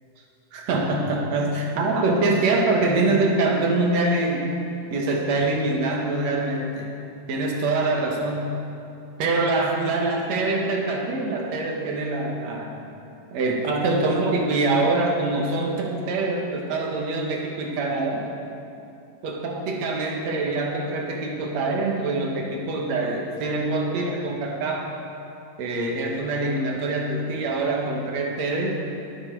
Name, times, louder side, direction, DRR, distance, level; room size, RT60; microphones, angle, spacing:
voice 1, 0.5-4.5 4.9-6.9 7.3-8.6 9.2-12.7 13.3-18.3 19.2-24.9 25.6-28.7, right 2 dB, 60° right, 0 dB, 2.4 m, -24 dB
21.0 x 7.7 x 4.7 m, 2.6 s
omnidirectional pair, 4.0 m